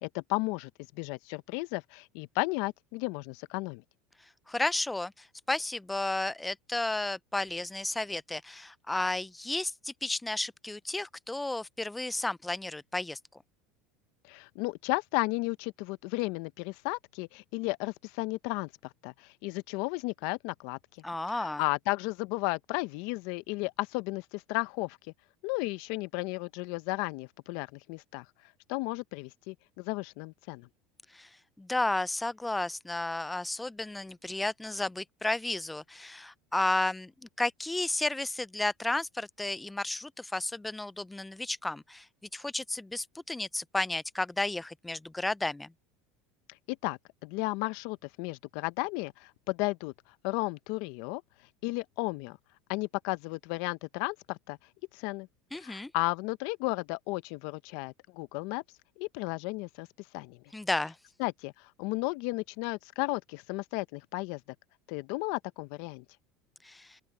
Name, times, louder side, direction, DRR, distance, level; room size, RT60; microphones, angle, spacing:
voice 1, 0.0-3.8 14.3-18.7 19.0-20.8 21.3-25.0 25.4-28.2 28.7-30.7 46.7-49.9 50.2-51.2 51.6-52.4 52.7-54.6 54.9-55.3 55.6-58.6 59.0-59.9 60.1-60.4 61.2-64.4 64.9-66.0, left 24 dB, 70° left, 0.9 m, -34 dB
voice 2, 4.5-13.2 21.0-21.6 31.1-31.3 31.6-37.1 37.4-42.1 42.3-45.7 55.5-55.9 60.5-61.0 66.6-67.0, left 2 dB, 10° left, 0.4 m, -32 dB
open air
supercardioid pair, 100°, 0 cm